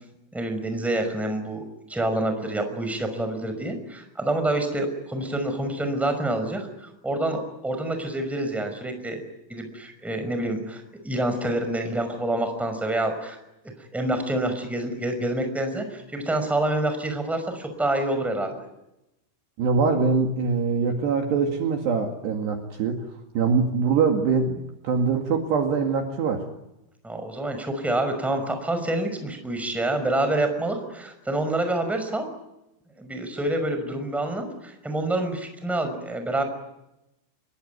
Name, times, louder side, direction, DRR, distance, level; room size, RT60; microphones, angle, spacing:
voice 1, 0.3-1.6 1.9-9.2 9.5-13.4 13.9-18.5 27.0-32.3 33.0-36.4, right 1 dB, ahead, 7 dB, 4.9 m, -27 dB
voice 2, 19.6-23.0 23.4-24.6 24.8-26.4, right 5 dB, 60° right, 3 dB, 3.9 m, -23 dB
27.5 x 22.5 x 9.5 m, 0.91 s
omnidirectional pair, 6.0 m